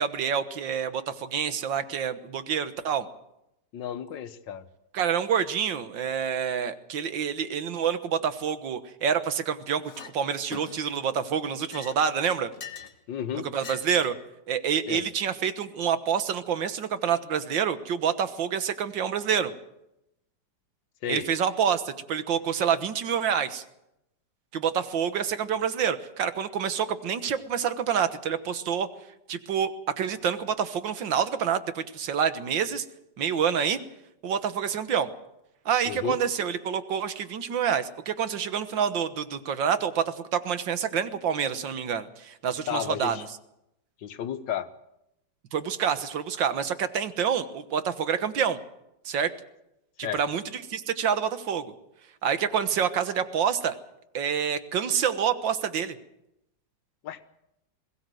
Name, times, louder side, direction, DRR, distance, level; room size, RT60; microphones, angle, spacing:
voice 1, 0.0-3.1 4.9-12.5 13.5-14.2 14.5-19.5 21.1-23.6 24.5-28.9 29.3-29.7 30.0-32.9 33.2-33.8 34.2-35.1 35.7-43.2 45.5-48.6 49.1-49.3 50.1-51.7 52.2-53.8 54.1-56.0, right 7 dB, 75° right, 11 dB, 2.0 m, -27 dB
voice 2, 3.7-4.6 13.1-13.5 14.9-15.0 21.0-21.3 35.8-36.2 42.7-43.2 44.0-44.7 50.0-50.2 57.0-57.2, left 9 dB, 75° left, 12 dB, 1.7 m, -32 dB
Chink clink, 9.8-10.1 10.5-11.0 11.5-13.0 13.5-14.3, left 7 dB, 50° left, 1.6 m, -43 dB
21.5 x 16.5 x 7.8 m, 0.87 s
omnidirectional pair, 2.0 m